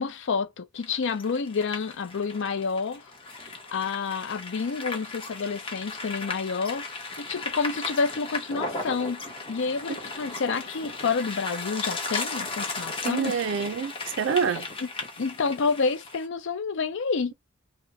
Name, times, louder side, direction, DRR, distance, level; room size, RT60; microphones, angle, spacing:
voice 1, 0.0-3.0 3.4-6.9 7.2-9.2 9.5-13.3 14.8-14.9 15.2-17.3, left 5 dB, 60° left, 0.5 m, -29 dB
sound 1, 0.8-16.3, left 3 dB, 25° left, 0.8 m, -36 dB
voice 2, 13.0-14.7, right 6 dB, 60° right, 0.4 m, -27 dB
3.5 x 2.1 x 2.7 m
head